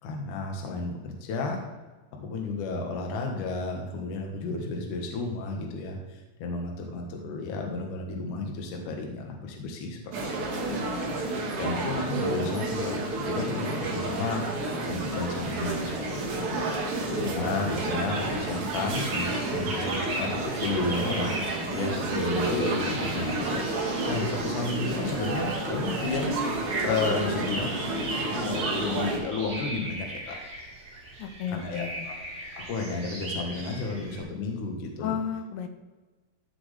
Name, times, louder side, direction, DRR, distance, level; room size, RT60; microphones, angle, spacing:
voice 1, 0.0-1.6 2.2-10.0 11.5-16.6 17.1-23.7 24.1-26.3 26.8-27.7 28.1-30.4 31.5-32.2 32.6-35.1, left 3 dB, 60° left, 1 dB, 2.4 m, -32 dB
sound 1, 10.1-29.2, right 2 dB, 80° right, 1.2 m, -30 dB
voice 2, 10.7-11.1 31.2-32.1 35.0-35.7, left 8 dB, 85° left, 7 dB, 3.1 m, -33 dB
sound 2, 15.0-34.2, right 2 dB, 40° right, 2.6 m, -39 dB
14.0 x 6.2 x 3.4 m, 1.2 s
omnidirectional pair, 5.1 m